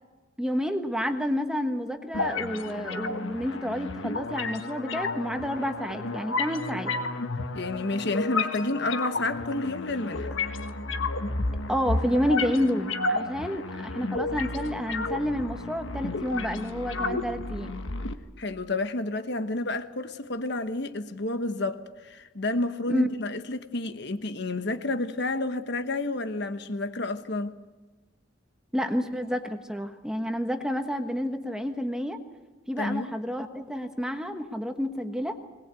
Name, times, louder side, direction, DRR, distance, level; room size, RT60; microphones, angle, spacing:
voice 1, 0.4-6.9 11.7-17.7 22.9-23.1 28.7-32.2 32.7-35.4, equal, 5° right, 1.2 m, -29 dB
sound 1, 2.1-18.1, left 3 dB, 70° left, 1.5 m, -32 dB
voice 2, 7.5-10.4 18.4-27.5 32.8-33.1, left 2 dB, 55° left, 1.2 m, -30 dB
21.5 x 20.0 x 8.3 m
head